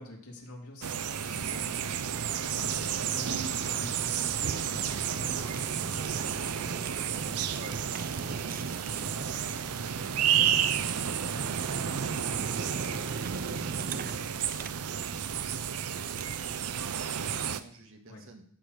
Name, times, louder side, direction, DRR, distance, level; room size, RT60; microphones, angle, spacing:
voice 1, 0.0-2.1 2.4-6.7 14.0-14.1 18.1-18.2, left 1 dB, 80° left, -1 dB, 2.8 m, -46 dB
sound 1, 0.8-17.6, right 8 dB, 85° right, 0.6 m, -31 dB
Fire, 1.3-16.5, right 4 dB, 40° right, 0.5 m, -40 dB
voice 2, 7.5-13.3 13.7-14.6 14.9-18.4, right 2 dB, 65° right, 4 dB, 1.7 m, -50 dB
13.5 x 4.9 x 6.7 m, 0.64 s
head